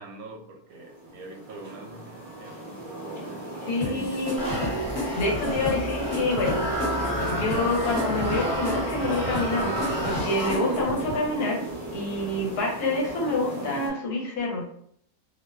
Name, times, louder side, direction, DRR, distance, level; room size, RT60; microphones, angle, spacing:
voice 1, 0.0-3.3 3.8-4.2 10.7-10.8, right 2 dB, 75° right, 1 dB, 1.0 m, -43 dB
sound 1, 0.7-13.9, right 1 dB, 20° right, 0.8 m, -36 dB
voice 2, 3.7-4.7 5.2-6.6 7.2-11.6 11.9-14.6, left 2 dB, 80° left, -1 dB, 1.3 m, -27 dB
sound 2, 3.8-11.2, equal, 50° left, 1.1 m, -34 dB
sound 3, 4.4-11.0, right 1 dB, 15° left, 0.8 m, -30 dB
2.7 x 2.1 x 2.3 m, 0.67 s
omnidirectional pair, 1.6 m